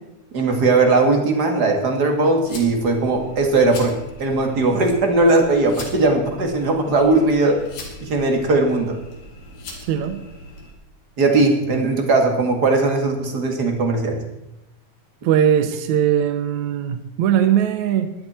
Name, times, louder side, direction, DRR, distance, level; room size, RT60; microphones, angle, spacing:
voice 1, 0.3-3.9 4.2-7.6 8.0-9.0 11.2-14.2, right 3 dB, 35° right, 3 dB, 2.1 m, -18 dB
sound 1, 2.4-10.7, left 1 dB, 85° left, 4.6 m, -39 dB
voice 2, 9.9-10.2 15.2-18.1, right 9 dB, 70° right, 9 dB, 2.0 m, -19 dB
17.0 x 11.5 x 4.4 m, 0.91 s
omnidirectional pair, 3.7 m